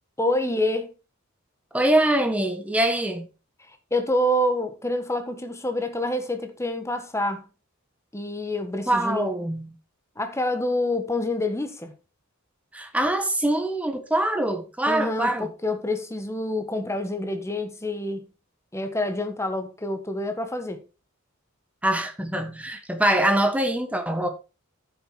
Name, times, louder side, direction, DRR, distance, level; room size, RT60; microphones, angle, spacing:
voice 1, 0.2-0.9 3.9-7.5 8.1-9.3 10.2-11.9 14.9-18.3 18.7-20.8, left 1 dB, 15° left, 1.5 m, -27 dB
voice 2, 1.7-3.3 8.9-9.7 12.7-15.5 21.8-24.3, right 1 dB, 5° right, 1.5 m, -24 dB
10.0 x 7.5 x 4.7 m
head